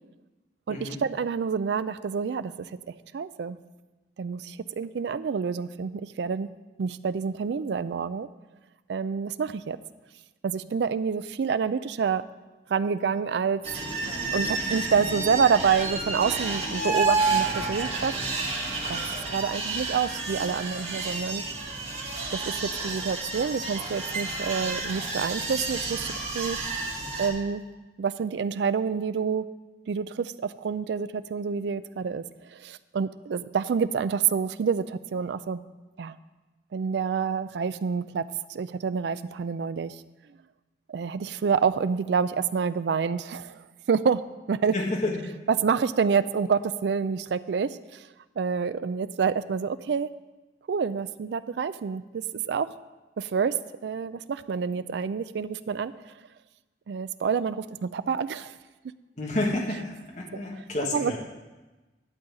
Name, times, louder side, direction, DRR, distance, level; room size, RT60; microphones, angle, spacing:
voice 1, 0.7-2.7 3.1-3.6 4.2-6.5 6.8-8.3 8.9-9.8 10.4-12.2 12.7-13.6 14.3-18.1 18.8-21.4 22.3-26.6 27.2-27.6 28.0-29.4 29.9-35.6 36.0-36.2 36.7-38.2 38.5-40.0 40.9-43.6 43.9-44.2 44.5-44.7 45.5-48.1 48.4-50.1 50.7-52.7 53.2-53.5 53.8-55.9 56.9-58.5 60.3-60.4 60.9-61.2, right 6 dB, 75° right, 15 dB, 0.4 m, -27 dB
sound 1, 13.6-27.3, right 3 dB, 35° right, 1.4 m, -30 dB
voice 2, 44.7-45.2 59.2-61.2, left 2 dB, 40° left, -1 dB, 1.4 m, -29 dB
11.5 x 4.0 x 7.5 m, 1.2 s
head